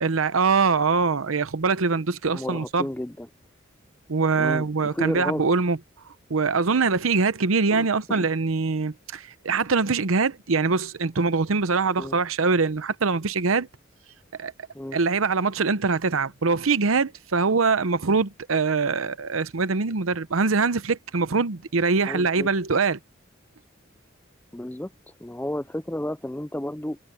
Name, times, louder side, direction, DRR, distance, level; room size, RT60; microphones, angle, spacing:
voice 1, 0.0-2.8 4.1-5.8 6.3-13.7 14.4-14.5 14.9-23.0, right 4 dB, 85° right, 0.8 m, -23 dB
voice 2, 2.3-3.3 4.4-5.4 7.7-8.3 12.0-12.2 14.7-15.0 22.1-22.5 24.5-24.9 25.2-27.0, left 1 dB, 10° left, 0.4 m, -32 dB
head